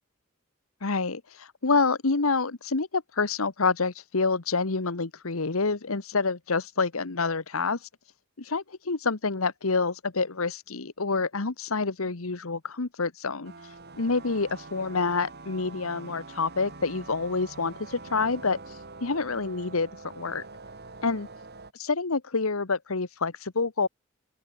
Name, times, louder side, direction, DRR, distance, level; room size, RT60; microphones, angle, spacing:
voice 1, 0.8-7.8 8.4-13.5 14.0-18.6 19.0-19.9 20.1-20.4 21.0-21.3 21.7-23.9, left 4 dB, 80° left, 1.3 m, -27 dB
sound 1, 13.4-21.7, right 3 dB, 50° right, 5.4 m, -45 dB
open air
head